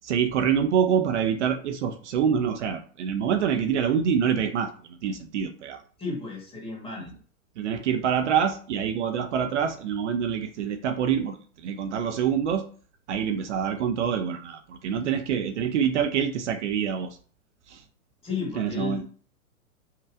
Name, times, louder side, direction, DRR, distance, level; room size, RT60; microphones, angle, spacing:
voice 1, 0.0-5.8 7.6-12.7 13.1-17.2 17.7-17.8 18.6-19.0, right 8 dB, 55° right, 7 dB, 0.5 m, -26 dB
voice 2, 6.0-7.1 18.2-19.1, left 5 dB, 15° left, -1 dB, 1.3 m, -33 dB
5.6 x 2.3 x 2.4 m, 0.43 s
hypercardioid pair, 115°, 42 cm